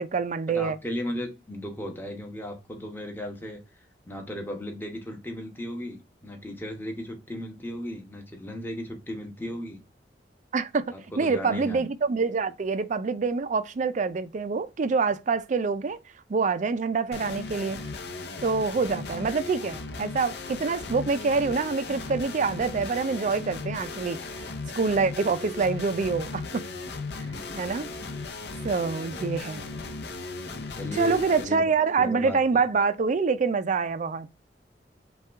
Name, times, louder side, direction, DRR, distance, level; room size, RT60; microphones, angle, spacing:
voice 1, 0.0-0.8 10.5-16.0 16.3-17.8 18.4-24.2 24.8-26.6 27.2-27.3 27.5-27.9 28.6-29.6 31.0-34.3, right 4 dB, 45° right, 0.4 m, -26 dB
voice 2, 0.5-3.6 4.0-9.8 10.9-11.9 18.9-19.0 27.3-28.0 29.1-29.3 30.7-31.6 32.0-32.4, equal, 10° left, 1.0 m, -36 dB
sound 1, 17.1-31.4, left 3 dB, 65° left, 0.6 m, -37 dB
5.6 x 2.3 x 3.4 m
head